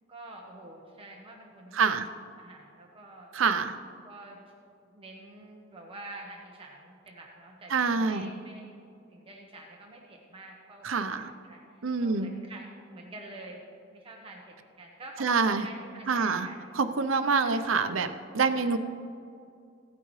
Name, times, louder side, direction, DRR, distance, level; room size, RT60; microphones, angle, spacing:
voice 1, 0.1-2.0 2.3-3.3 4.0-4.4 4.9-8.8 9.1-13.6 13.9-16.6 17.3-17.7 18.4-18.7, right 2 dB, 30° right, -1 dB, 1.0 m, -47 dB
voice 2, 1.7-2.1 3.3-3.8 7.7-8.3 10.8-11.3 11.8-12.3 15.2-15.7 16.1-16.5 16.7-18.8, right 5 dB, 90° right, 10 dB, 0.7 m, -26 dB
16.5 x 9.2 x 3.2 m, 2.4 s
head